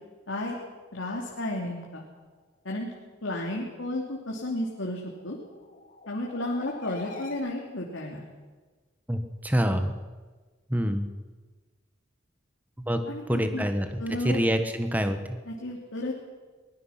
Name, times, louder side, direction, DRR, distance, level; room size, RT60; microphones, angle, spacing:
voice 1, 0.9-2.0 2.6-2.9 3.2-5.4 6.1-8.2 13.1-13.7 14.0-14.4 15.5-16.1, left 1 dB, 85° left, -2 dB, 3.1 m, -32 dB
sound 1, 5.0-7.4, left 2 dB, 40° left, 2.9 m, -44 dB
voice 2, 9.1-9.9 10.7-11.1 12.9-13.0 13.3-14.0 14.2-15.4, equal, 10° right, 7 dB, 1.4 m, -26 dB
23.5 x 20.0 x 5.9 m, 1.4 s
head